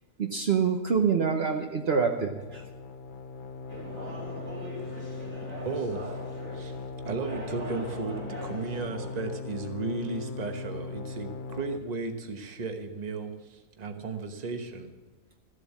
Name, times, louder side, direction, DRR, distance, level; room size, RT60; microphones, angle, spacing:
voice 1, 0.2-2.6, right 6 dB, 55° right, 3 dB, 1.1 m, -26 dB
sound 1, 2.4-11.8, left 4 dB, 50° left, 0.7 m, -39 dB
sound 2, 3.7-9.2, equal, 90° right, 3.1 m, -42 dB
voice 2, 5.6-6.1 6.5-6.7 7.0-14.9, right 3 dB, 35° right, 6 dB, 1.1 m, -35 dB
14.0 x 8.0 x 7.3 m, 1.2 s
omnidirectional pair, 1.4 m